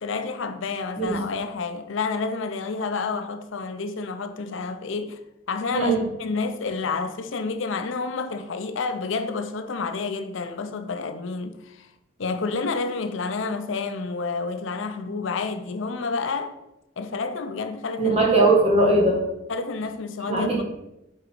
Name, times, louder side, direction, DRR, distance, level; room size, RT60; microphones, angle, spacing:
voice 1, 0.0-5.2 5.5-11.9 12.2-16.6 17.0-18.1 19.5-20.6, left 4 dB, 65° left, 0.5 m, -29 dB
voice 2, 5.7-6.0 18.0-19.2 20.3-20.6, right 2 dB, 30° right, 1.6 m, -20 dB
8.1 x 3.9 x 4.6 m
head